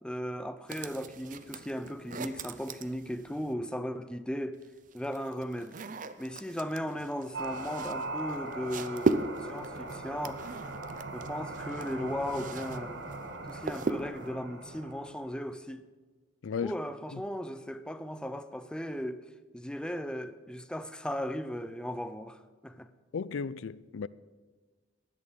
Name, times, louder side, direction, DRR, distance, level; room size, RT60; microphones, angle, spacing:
voice 1, 0.0-4.6 4.9-5.8 6.2-10.4 11.1-13.0 13.5-15.8 16.6-19.2 19.5-22.9, equal, 5° left, 0.6 m, -37 dB
sound 1, 0.7-3.5 4.5-12.8 13.1-14.3, right 3 dB, 45° right, 0.6 m, -37 dB
sound 2, 7.3-15.3, right 2 dB, 65° right, 1.6 m, -40 dB
voice 2, 16.4-16.8 17.1-17.2 23.1-24.1, left 6 dB, 85° left, 0.4 m, -35 dB
16.0 x 11.0 x 5.2 m
head